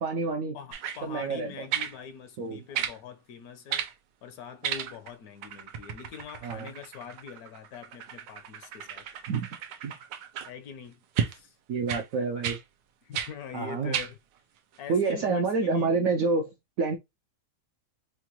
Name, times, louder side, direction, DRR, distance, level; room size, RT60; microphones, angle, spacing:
voice 1, 0.0-0.6 1.0-1.6 2.4-2.6 6.4-6.7 9.3-9.5 9.8-9.9 11.7-12.6 13.5-14.0 14.9-17.0, right 4 dB, 75° right, 0.8 m, -28 dB
voice 2, 0.5-3.9 4.2-9.1 10.5-11.0 11.3-11.6 13.0-14.2 14.8-15.9, left 7 dB, 70° left, 1.0 m, -43 dB
sound 1, 0.7-1.0 1.7-2.0 2.7-3.0 3.7-3.9 4.6-5.1 5.4-10.5 11.2-11.4 11.9-12.1 12.4-12.6 13.1-13.3 13.9-14.1 14.7-14.8, right 8 dB, 90° right, 1.3 m, -33 dB
4.4 x 2.2 x 2.9 m
omnidirectional pair, 1.9 m